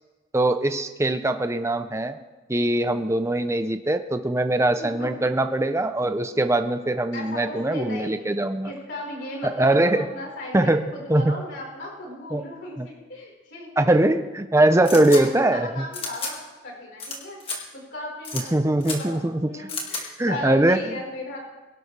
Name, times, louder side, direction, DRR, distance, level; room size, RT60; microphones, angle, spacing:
voice 1, 0.3-2.2 2.5-8.7 9.4-10.1 10.5-11.4 12.3-12.4 12.8-12.9 13.8-15.9 18.5-19.7 20.2-20.8, right 1 dB, 15° right, 9 dB, 0.5 m, -22 dB
voice 2, 4.8-5.4 7.1-8.2 8.6-13.9 14.6-17.4 17.7-21.4, left 1 dB, 60° left, -2 dB, 4.6 m, -36 dB
sound 1, 14.9-15.2 15.9-16.3 17.0-17.2 17.4-17.6 18.2-18.4 18.8-19.0 19.7-20.0, left 3 dB, 25° left, 2.1 m, -31 dB
22.5 x 12.0 x 3.3 m, 1.2 s
head